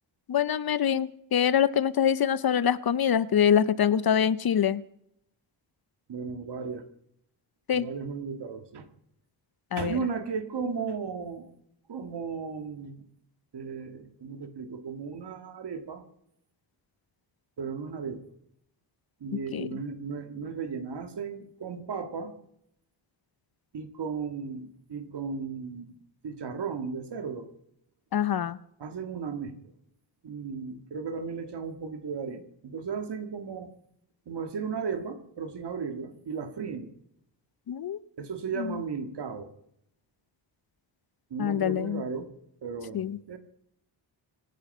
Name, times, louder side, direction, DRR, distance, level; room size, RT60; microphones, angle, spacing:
voice 1, 0.3-4.8 7.7-7.9 9.7-10.0 19.5-19.7 28.1-28.6 37.7-38.0 38.6-38.8 41.4-42.0 42.9-43.2, left 8 dB, 50° left, 17 dB, 0.7 m, -25 dB
voice 2, 6.1-6.8 7.7-8.9 9.8-11.5 11.9-13.0 13.5-16.0 17.6-18.2 19.2-22.3 23.7-25.9 26.2-27.5 28.8-29.6 30.2-33.7 34.3-36.9 38.2-39.5 41.3-42.3 42.6-43.4, right 5 dB, 60° right, 7 dB, 2.2 m, -35 dB
25.5 x 10.5 x 5.5 m, 0.74 s
wide cardioid pair, 115°, 47 cm